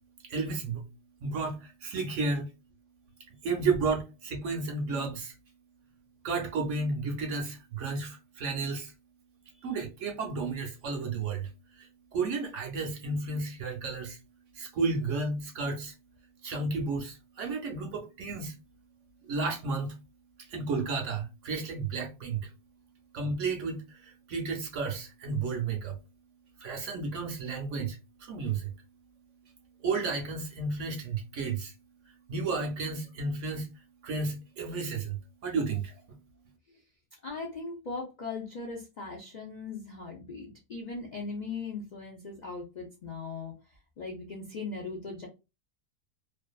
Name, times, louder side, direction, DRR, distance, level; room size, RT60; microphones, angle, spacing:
voice 1, 0.2-0.8 1.2-2.5 3.4-5.3 6.2-8.9 9.6-11.5 11.8-14.2 14.6-15.9 16.4-18.5 19.3-20.0 20.5-22.5 23.1-26.0 26.6-28.7 29.8-31.7 32.3-33.7 34.0-35.2 35.4-36.2, right 4 dB, 65° right, 0.8 m, -32 dB
voice 2, 37.2-43.5 44.0-45.3, left 4 dB, 70° left, 0.4 m, -39 dB
2.5 x 2.4 x 2.2 m
omnidirectional pair, 1.6 m